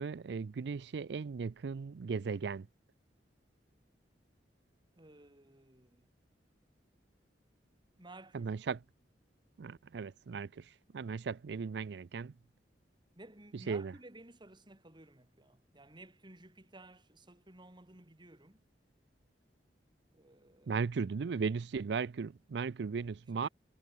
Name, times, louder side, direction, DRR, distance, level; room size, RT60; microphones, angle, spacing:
voice 1, 0.0-2.7 8.3-8.8 9.6-12.3 13.5-13.9 20.7-23.5, right 5 dB, 70° right, 0.4 m, -37 dB
voice 2, 4.9-6.1 8.0-8.5 13.2-18.6 20.1-20.9 23.4-23.5, right 2 dB, 25° right, 2.5 m, -55 dB
head